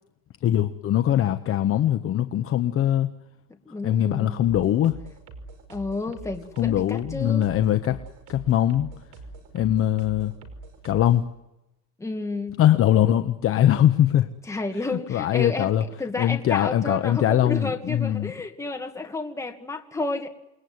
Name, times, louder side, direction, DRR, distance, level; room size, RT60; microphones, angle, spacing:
voice 1, 0.4-3.1 3.8-5.0 6.6-8.0 8.3-8.9 9.5-10.3 10.8-11.2 12.6-14.3 15.1-15.8 16.2-18.3, left 11 dB, 30° left, 1.1 m, -21 dB
voice 2, 3.7-4.5 5.7-7.5 12.0-12.6 14.5-20.3, left 3 dB, 5° left, 2.2 m, -31 dB
sound 1, 4.4-11.2, right 3 dB, 40° right, 5.4 m, -43 dB
29.0 x 20.5 x 9.6 m
cardioid pair, 165°, 43 cm